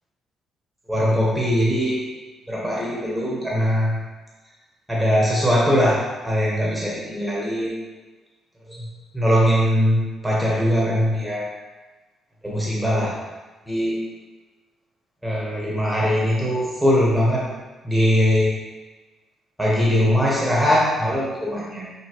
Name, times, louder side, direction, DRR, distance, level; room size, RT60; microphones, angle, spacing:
voice 1, 0.9-2.0 2.5-4.0 4.9-7.8 8.7-11.5 12.4-13.1 13.7-14.0 15.2-17.5 17.8-18.5 19.6-21.9, equal, 5° right, -6 dB, 1.0 m, -21 dB
5.8 x 2.8 x 2.9 m, 1.3 s
cardioid pair, 90°, 0 cm